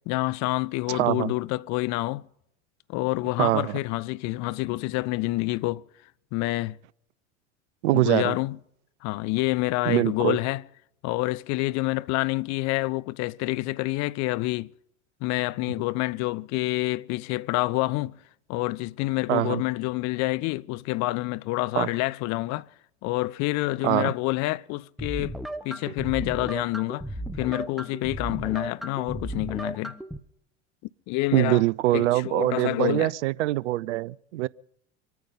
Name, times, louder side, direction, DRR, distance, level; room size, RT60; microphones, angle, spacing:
voice 1, 0.0-2.2 2.9-5.8 6.3-6.8 7.9-8.6 9.0-10.6 11.0-14.7 15.2-18.2 18.5-22.7 23.0-25.4 25.6-27.0 27.4-30.0 31.1-31.6 31.9-33.1, left 20 dB, 50° left, 0.7 m, -27 dB
voice 2, 0.9-1.3 3.4-3.8 7.8-8.3 9.8-10.4 19.3-19.6 21.8-21.9 23.8-24.1 31.3-34.5, right 17 dB, 70° right, 0.6 m, -23 dB
sound 1, 25.0-30.2, right 1 dB, ahead, 1.2 m, -35 dB
24.5 x 9.4 x 5.5 m
hypercardioid pair, 85°, 36 cm